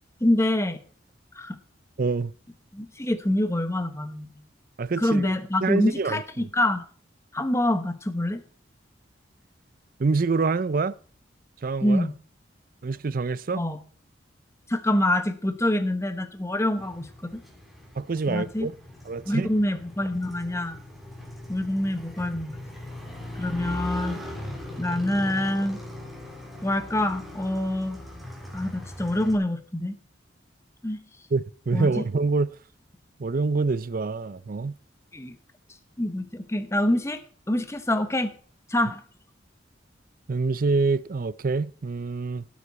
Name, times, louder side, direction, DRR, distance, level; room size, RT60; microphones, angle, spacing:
voice 1, 0.2-0.8 1.4-1.6 2.7-4.3 5.0-6.8 7.3-8.4 11.8-12.1 13.5-13.8 14.7-17.4 18.3-18.7 19.3-20.8 21.5-22.6 23.4-24.2 24.8-25.8 26.6-28.0 28.5-29.9 30.8-31.0 31.7-32.0 35.1-35.3 36.0-37.2 37.5-38.3 38.7-39.0, left 1 dB, 15° left, 1.0 m, -26 dB
voice 2, 2.0-2.3 4.8-5.3 5.6-6.5 10.0-10.9 11.6-12.1 12.8-13.7 18.0-18.7 19.1-19.5 31.3-32.5 33.2-34.7 40.3-42.5, right 4 dB, 50° right, 0.5 m, -26 dB
Motorcycle, 16.8-29.4, left 1 dB, ahead, 3.4 m, -40 dB
17.5 x 8.4 x 4.2 m
head